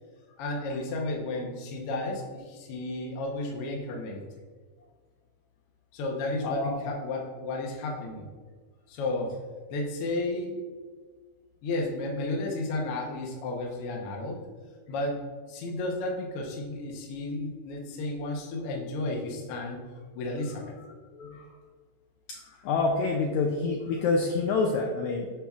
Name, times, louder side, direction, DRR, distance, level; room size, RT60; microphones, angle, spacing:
voice 1, 0.4-4.2 5.9-8.3 8.9-9.3 9.7-10.6 11.6-14.4 14.9-19.8 20.1-20.8, left 2 dB, 70° left, 0 dB, 1.4 m, -33 dB
voice 2, 6.4-7.0 21.1-21.5 22.3-25.3, left 4 dB, 85° left, 1 dB, 1.6 m, -28 dB
8.7 x 5.7 x 2.4 m, 1.5 s
omnidirectional pair, 3.8 m